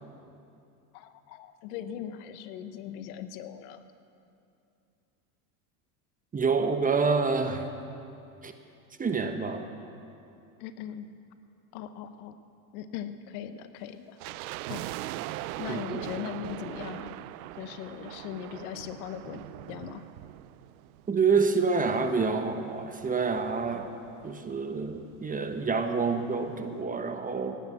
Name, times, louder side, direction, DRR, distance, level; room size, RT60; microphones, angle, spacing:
voice 1, 0.9-3.8 10.6-11.1 11.7-12.4 12.7-14.2 14.7-14.9 15.6-17.1 17.6-20.0, left 10 dB, 65° left, 11 dB, 1.1 m, -39 dB
voice 2, 6.3-7.7 8.4-8.5 9.0-9.7 15.7-16.0 21.1-23.9 24.2-27.6, right 4 dB, 15° right, 6 dB, 1.1 m, -27 dB
sound 1, 14.2-21.5 21.7-21.8 22.5-24.3 24.6-24.7 24.9-25.2 25.6-25.7, right 16 dB, 65° right, 0.6 m, -41 dB
16.5 x 10.5 x 7.8 m, 2.6 s
supercardioid pair, 115°, 47 cm